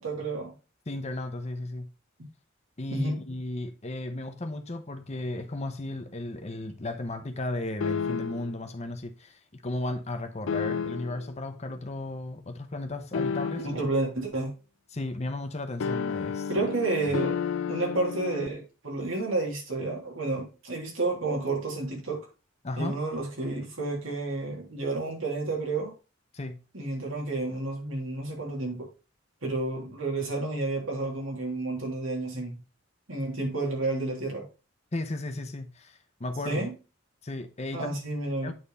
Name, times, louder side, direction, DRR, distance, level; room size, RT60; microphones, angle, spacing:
voice 1, 0.0-0.5 2.9-3.2 13.6-14.5 16.5-17.4 17.7-22.2 22.8-25.9 26.7-28.9 29.4-32.6 33.1-34.5 36.4-36.7 37.7-38.5, right 2 dB, 85° right, 3.0 m, -30 dB
voice 2, 0.9-1.9 2.8-13.8 14.9-16.5 17.1-17.2 22.6-23.0 26.3-26.6 34.9-36.7 37.2-37.9 38.4-38.5, left 2 dB, 35° left, 0.9 m, -35 dB
sound 1, 7.8-8.6 10.5-11.3 13.1-14.0 15.8-18.5, left 6 dB, 75° left, 0.4 m, -31 dB
8.8 x 3.8 x 4.1 m
head